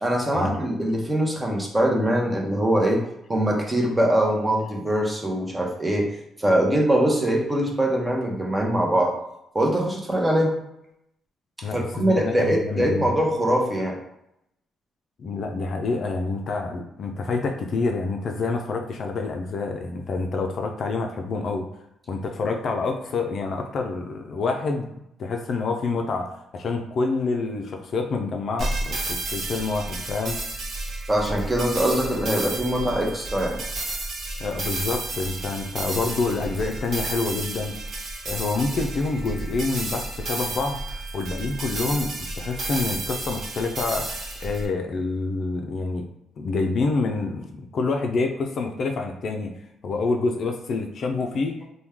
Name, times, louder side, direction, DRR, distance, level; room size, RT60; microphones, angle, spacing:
voice 1, 0.0-3.0 3.3-6.1 6.4-9.1 9.5-10.6 11.7-14.0 31.1-33.6, right 1 dB, 15° right, 0 dB, 0.8 m, -22 dB
voice 2, 11.6-13.1 15.2-21.7 22.1-24.9 25.2-30.4 34.4-37.8 38.2-46.0 46.4-49.6 49.8-51.6, left 3 dB, 55° left, 3 dB, 0.4 m, -27 dB
sound 1, 28.6-44.6, right 2 dB, 60° right, 0.8 m, -32 dB
3.0 x 2.2 x 3.5 m, 0.81 s
cardioid pair, 90°, 0 cm